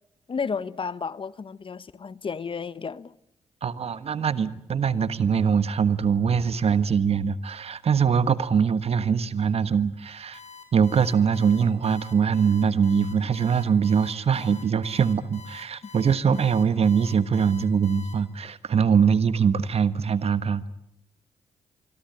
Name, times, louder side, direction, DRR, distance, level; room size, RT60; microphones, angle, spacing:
voice 1, 0.3-3.1, left 5 dB, 45° left, 1.0 m, -32 dB
voice 2, 3.6-10.4 10.7-20.7, right 6 dB, 55° right, 1.3 m, -23 dB
Alarm, 10.3-18.1, left 5 dB, 65° left, 6.3 m, -45 dB
25.5 x 22.5 x 8.9 m
supercardioid pair, 45°, 12 cm